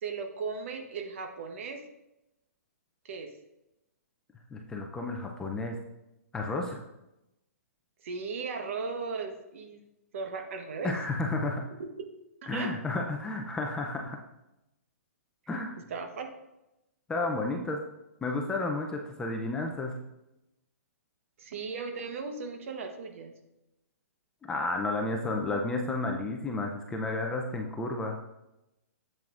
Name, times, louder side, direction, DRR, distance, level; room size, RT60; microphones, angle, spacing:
voice 1, 0.0-1.8 3.0-3.3 8.0-9.8 10.1-10.9 11.8-12.1 12.4-12.7 15.9-16.3 21.4-23.3, right 4 dB, 55° right, 5 dB, 1.1 m, -37 dB
voice 2, 4.5-5.8 6.3-6.8 10.8-11.6 12.5-14.2 15.5-15.7 17.1-17.8 18.2-20.0 24.5-28.2, left 2 dB, 10° left, 1 dB, 0.5 m, -32 dB
7.6 x 7.4 x 2.5 m, 0.90 s
hypercardioid pair, 155°, 8 cm